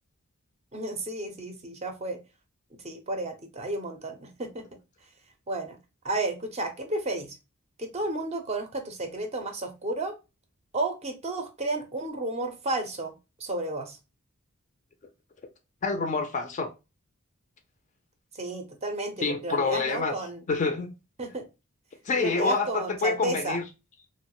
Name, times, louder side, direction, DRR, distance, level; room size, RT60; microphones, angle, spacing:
voice 1, 0.7-2.2 2.8-4.6 5.5-5.8 6.0-7.3 7.8-10.1 10.7-14.0 18.3-20.4 21.2-21.5 22.2-23.6, right 2 dB, 30° right, 0.5 m, -32 dB
voice 2, 15.8-16.7 19.2-20.1 20.5-20.9 22.0-23.6, left 4 dB, 35° left, 0.3 m, -27 dB
2.9 x 2.1 x 2.9 m
head